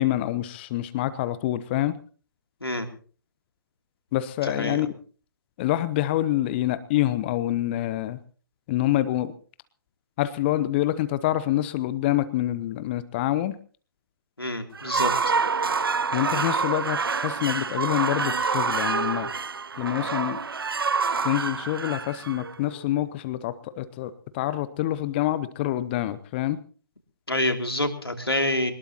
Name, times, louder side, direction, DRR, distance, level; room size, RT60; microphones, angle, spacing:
voice 1, 0.0-2.0 4.1-4.9 5.6-8.2 8.7-9.3 10.2-13.6 16.1-19.3 19.8-20.4 21.2-26.6, left 14 dB, 25° left, 15 dB, 0.9 m, -26 dB
voice 2, 14.4-15.1 27.3-28.7, left 1 dB, 85° left, 5 dB, 3.0 m, -26 dB
sound 1, 14.7-22.9, right 5 dB, 70° right, 0.7 m, -27 dB
22.5 x 20.0 x 2.9 m, 0.41 s
figure-of-eight pair, 135°, 12 cm